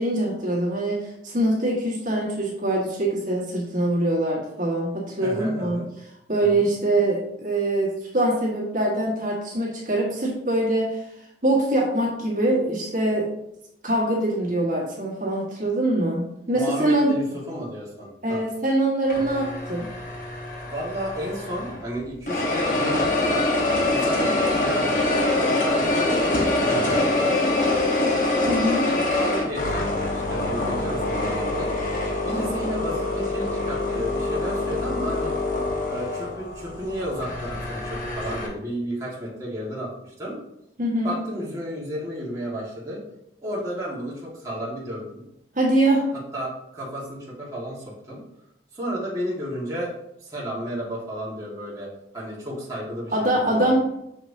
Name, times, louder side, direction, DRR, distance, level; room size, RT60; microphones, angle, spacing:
voice 1, 0.0-5.8 6.3-11.0 11.4-13.3 13.8-17.1 18.2-19.8 28.5-28.8 40.8-41.2 45.5-46.1 53.1-53.8, right 1 dB, 45° right, -4 dB, 1.5 m, -23 dB
voice 2, 5.2-5.9 6.4-6.6 16.5-18.4 20.7-23.5 23.9-27.6 29.2-31.7 32.2-35.3 35.8-40.4 41.0-43.0 43.4-45.2 46.3-48.2 48.7-49.9 50.2-51.9 52.1-53.8, equal, 20° right, -7 dB, 1.7 m, -32 dB
sound 1, 19.1-21.9 22.3-38.5, left 2 dB, 45° left, 1.1 m, -25 dB
6.5 x 5.9 x 2.7 m, 0.81 s
head